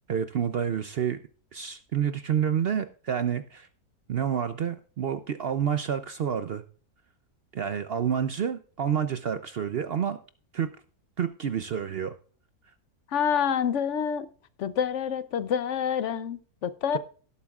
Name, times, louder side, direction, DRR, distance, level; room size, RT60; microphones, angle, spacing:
voice 1, 0.1-1.2 1.5-3.7 4.1-6.6 7.5-10.2 10.5-10.7 11.2-12.1, right 8 dB, 65° right, 0.6 m, -28 dB
voice 2, 13.1-14.3 14.6-17.0, left 8 dB, 60° left, 0.8 m, -27 dB
17.5 x 8.3 x 2.4 m
omnidirectional pair, 1.7 m